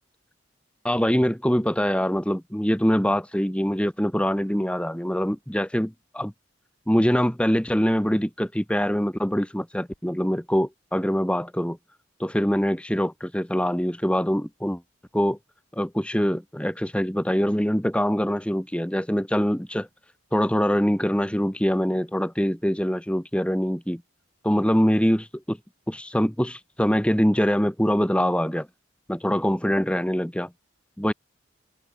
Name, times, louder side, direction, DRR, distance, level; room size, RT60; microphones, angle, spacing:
voice 1, 0.8-6.3 6.9-11.8 12.2-14.8 15.1-15.4 15.7-19.9 20.3-24.0 24.4-25.6 25.9-28.7 29.1-30.5 31.0-31.1, equal, 5° left, 1.6 m, -24 dB
head